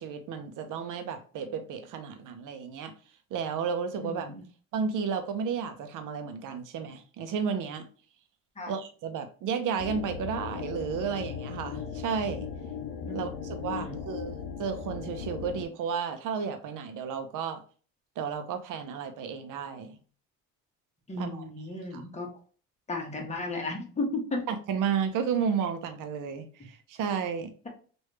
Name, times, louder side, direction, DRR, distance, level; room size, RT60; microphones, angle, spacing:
voice 1, 0.0-2.9 3.3-4.3 4.7-7.8 8.7-12.5 13.1-17.6 18.2-20.0 21.2-21.5 21.9-22.0 24.5-27.5, right 6 dB, 55° right, 0.8 m, -32 dB
voice 2, 4.0-4.4 8.6-8.7 13.0-14.0 21.1-22.3 22.9-24.5, left 2 dB, 20° left, 1.2 m, -35 dB
sound 1, 9.8-15.6, left 6 dB, 70° left, 0.7 m, -37 dB
3.1 x 2.6 x 3.2 m
supercardioid pair, 90°, 37 cm